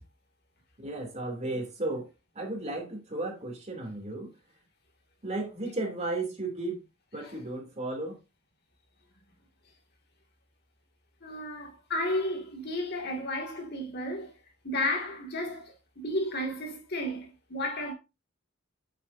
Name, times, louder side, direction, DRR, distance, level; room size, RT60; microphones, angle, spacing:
voice 1, 0.8-4.3 5.2-6.8 7.1-8.2, right 2 dB, 35° right, 2.8 m, -34 dB
voice 2, 11.2-14.3 14.6-17.9, left 1 dB, 55° left, 2.2 m, -33 dB
8.5 x 7.8 x 2.7 m
head